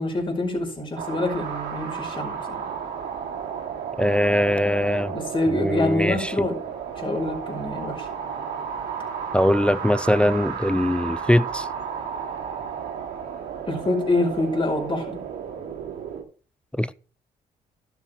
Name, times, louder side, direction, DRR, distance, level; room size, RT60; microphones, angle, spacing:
voice 1, 0.0-2.4 5.1-6.6 7.0-8.1 13.7-15.2, left 2 dB, 30° left, 5.1 m, -25 dB
sound 1, 1.0-16.2, right 7 dB, 75° right, 2.6 m, -33 dB
voice 2, 4.0-5.1 5.5-6.3 9.3-11.7 16.7-16.9, left 1 dB, 5° left, 0.5 m, -21 dB
12.0 x 7.1 x 4.6 m
supercardioid pair, 60°, 17 cm